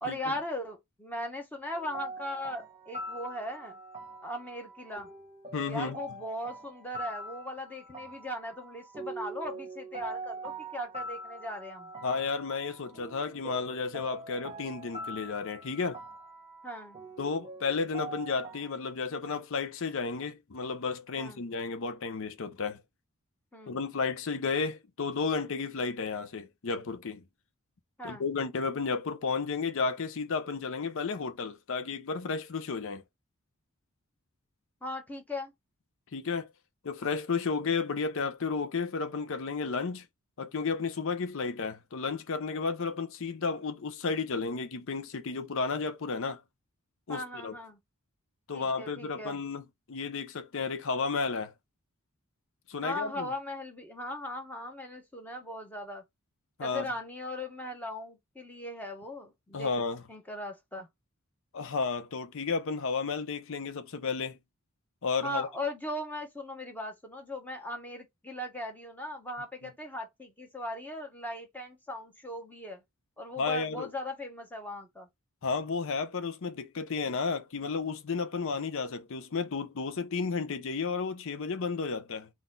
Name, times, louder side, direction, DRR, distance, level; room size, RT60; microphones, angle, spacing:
voice 1, 0.0-3.8 4.2-5.1 5.7-11.9 16.6-17.0 21.2-21.4 23.5-23.8 28.0-28.2 34.8-35.5 47.1-47.8 48.5-49.4 52.8-56.0 56.6-59.7 60.1-60.9 65.2-72.8 73.2-75.1, left 1 dB, 10° left, 1.1 m, -38 dB
sound 1, 1.7-18.8, right 2 dB, 25° right, 1.1 m, -43 dB
voice 2, 5.5-6.0 12.0-16.0 17.2-22.8 23.7-27.2 28.0-33.0 36.1-36.5 36.8-40.1 40.4-46.4 47.1-47.6 48.5-51.5 52.7-53.3 56.6-56.9 59.5-60.0 61.5-64.4 65.0-65.5 73.4-73.9 75.4-82.3, left 4 dB, 60° left, 0.6 m, -32 dB
4.0 x 2.4 x 3.8 m
head